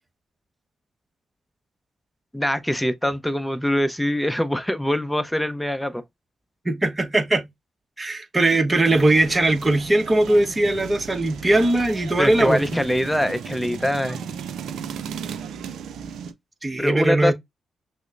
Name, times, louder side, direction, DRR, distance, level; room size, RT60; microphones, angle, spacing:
voice 1, 2.3-6.0 12.2-14.2 16.8-17.3, left 1 dB, 5° left, 0.7 m, -23 dB
voice 2, 6.6-7.4 8.0-12.6 16.6-17.3, right 2 dB, 25° right, 1.1 m, -20 dB
sound 1, 8.8-16.3, right 7 dB, 75° right, 0.5 m, -35 dB
6.1 x 2.1 x 2.5 m
supercardioid pair, 55°, 0 cm